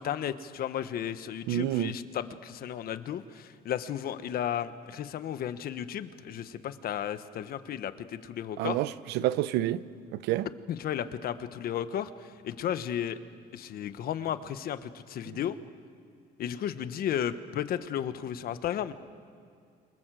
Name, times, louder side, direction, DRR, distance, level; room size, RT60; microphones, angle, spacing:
voice 1, 0.0-8.8 10.7-13.2 13.5-15.6 16.4-18.9, left 10 dB, 60° left, 1.3 m, -34 dB
voice 2, 1.5-1.9 8.6-9.8 10.1-10.5, right 14 dB, 90° right, 0.8 m, -28 dB
27.5 x 27.5 x 7.8 m
cardioid pair, 110°, 17 cm